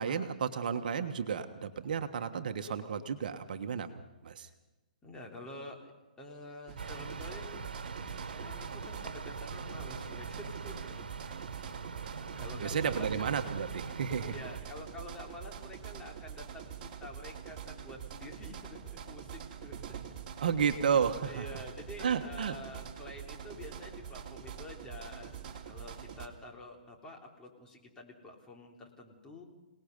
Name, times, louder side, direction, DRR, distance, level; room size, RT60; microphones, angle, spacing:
voice 1, 0.0-3.9 4.2-4.5 12.6-14.3 20.4-21.5 22.0-22.6, right 7 dB, 65° right, 7 dB, 1.4 m, -32 dB
voice 2, 5.0-5.9 6.2-7.7 8.3-11.0 12.4-13.4 14.3-20.0 21.3-29.4, left 1 dB, 15° left, 0 dB, 3.4 m, -48 dB
sound 1, 6.7-26.3, right 8 dB, 40° right, 2.8 m, -45 dB
sound 2, 6.8-14.6, right 4 dB, 90° right, 1.4 m, -42 dB
26.5 x 19.0 x 5.4 m, 1.1 s
hypercardioid pair, 145°, 5 cm